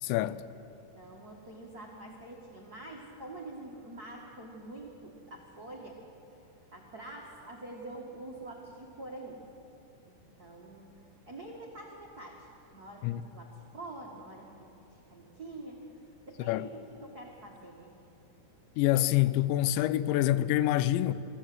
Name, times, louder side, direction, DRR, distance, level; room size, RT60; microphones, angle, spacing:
voice 1, 0.0-0.4 13.0-13.2 16.5-16.7 18.8-21.1, left 14 dB, 85° left, 2.9 m, -26 dB
voice 2, 0.9-6.0 6.4-9.4 10.0-15.8 16.2-17.9, right 2 dB, 65° right, 0.9 m, -46 dB
25.0 x 15.5 x 7.8 m
omnidirectional pair, 5.1 m